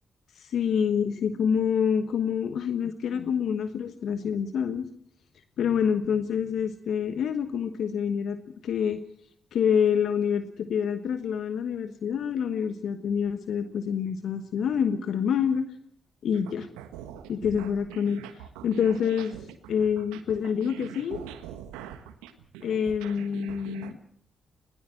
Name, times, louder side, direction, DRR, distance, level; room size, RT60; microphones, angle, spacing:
voice 1, 0.3-4.9 5.6-9.0 9.5-15.6 16.2-16.7 17.3-19.4 19.7-21.2 22.6-24.0, left 7 dB, 70° left, 10 dB, 1.2 m, -27 dB
sound 1, 16.3-23.9, right 10 dB, 85° right, 1.4 m, -43 dB
21.0 x 17.5 x 7.7 m, 0.64 s
hypercardioid pair, 45°, 0 cm